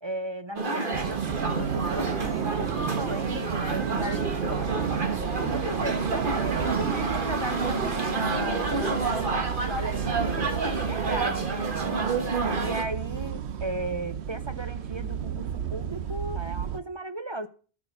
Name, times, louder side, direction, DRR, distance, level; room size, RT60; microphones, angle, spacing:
voice 1, 0.0-4.8 5.4-12.1 12.6-17.5, right 1 dB, 30° right, 0.6 m, -36 dB
sound 1, 0.6-12.8, right 3 dB, 50° right, 1.7 m, -29 dB
sound 2, 0.9-16.8, right 8 dB, 85° right, 1.0 m, -32 dB
13.5 x 6.3 x 6.7 m
omnidirectional pair, 1.1 m